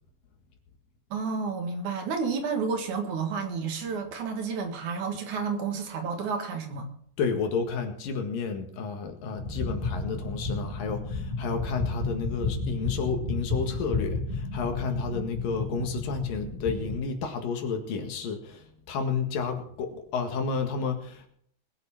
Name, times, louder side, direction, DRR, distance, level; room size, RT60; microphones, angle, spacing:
voice 1, 1.1-6.9, right 5 dB, 65° right, 5 dB, 3.0 m, -31 dB
voice 2, 7.2-21.3, left 5 dB, 75° left, 5 dB, 3.5 m, -31 dB
sound 1, 9.4-17.0, left 3 dB, 10° right, 2.7 m, -32 dB
20.5 x 8.1 x 5.9 m, 0.64 s
omnidirectional pair, 4.0 m